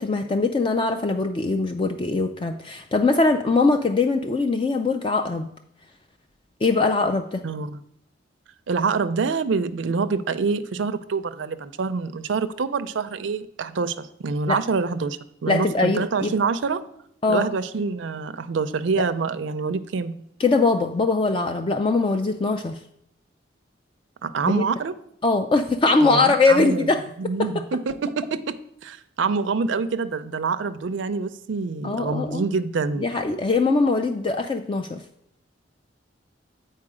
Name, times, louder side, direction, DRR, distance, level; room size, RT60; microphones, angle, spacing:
voice 1, 0.0-5.5 6.6-7.4 14.5-14.6 15.5-16.3 17.2-17.5 20.4-22.8 24.5-24.6 25.2-27.0 31.8-32.4 33.0-35.0, left 3 dB, 25° left, 6 dB, 0.3 m, -21 dB
voice 2, 8.7-16.8 17.3-20.1 24.2-24.9 26.0-26.9 27.2-28.6 28.8-33.1, right 4 dB, 80° right, 10 dB, 0.4 m, -26 dB
8.6 x 4.5 x 4.9 m, 0.75 s
head